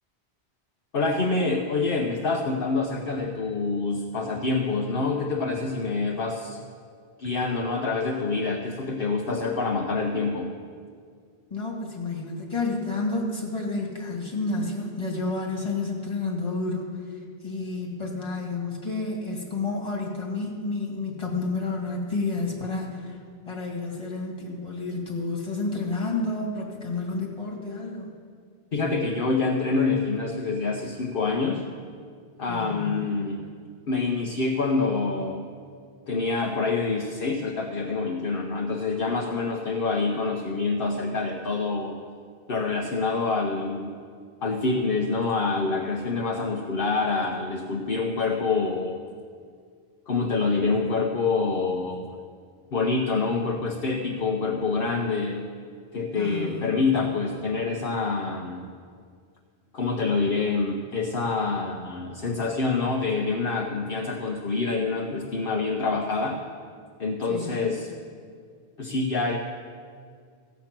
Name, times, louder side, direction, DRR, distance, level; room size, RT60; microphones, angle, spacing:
voice 1, 0.9-6.6 7.2-10.6 28.7-31.6 32.4-33.4 33.9-35.5 36.1-42.0 42.5-44.0 44.4-49.0 50.1-52.2 52.7-55.4 55.9-58.6 59.7-66.4 67.0-67.9 68.8-69.4, left 3 dB, 60° left, 1 dB, 1.0 m, -26 dB
voice 2, 11.5-23.2 23.5-28.1 32.5-33.1 56.1-56.8 67.3-67.8, left 3 dB, 25° left, -2 dB, 2.1 m, -30 dB
15.0 x 8.3 x 5.9 m, 2.1 s
omnidirectional pair, 1.1 m